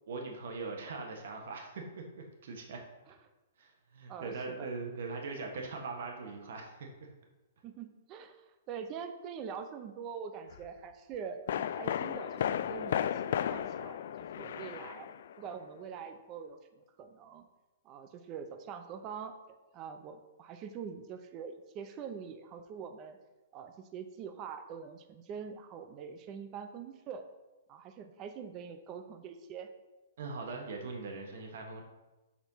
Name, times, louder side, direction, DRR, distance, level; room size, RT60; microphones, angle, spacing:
voice 1, 0.1-2.8 3.6-7.1 30.2-31.8, right 3 dB, 60° right, 2 dB, 1.4 m, -41 dB
voice 2, 4.1-4.7 7.6-14.0 14.3-15.1 15.4-16.6 17.0-17.5 17.8-19.4 19.7-23.2 23.5-27.3 27.7-29.7, right 7 dB, 25° right, 8 dB, 0.6 m, -44 dB
sound 1, 10.5-10.7 11.5-15.6 15.8-15.9, left 9 dB, 55° left, 0.3 m, -34 dB
7.2 x 4.3 x 5.6 m, 1.1 s
hypercardioid pair, 160°, 0 cm